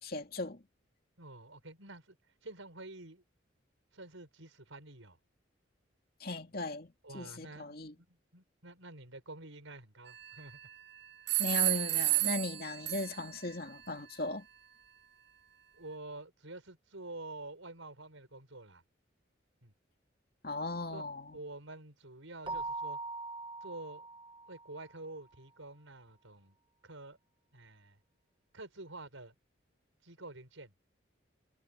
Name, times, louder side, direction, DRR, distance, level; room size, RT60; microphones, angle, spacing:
voice 1, 0.0-0.6 6.2-7.9 11.4-14.5 20.4-21.4, left 2 dB, 50° left, 2.6 m, -38 dB
voice 2, 1.2-2.2 2.4-3.2 3.9-5.2 7.0-10.6 15.7-18.8 19.6-19.7 20.9-21.0 21.3-23.0 23.6-24.1 24.5-26.5 26.8-27.2 27.5-28.0 28.5-29.3 30.0-30.7, right 2 dB, 90° right, 6.4 m, -48 dB
sound 1, 10.1-10.7 11.3-13.4, right 17 dB, 55° right, 1.0 m, -32 dB
Keyboard (musical), 22.5-24.9, right 3 dB, 25° right, 1.4 m, -41 dB
head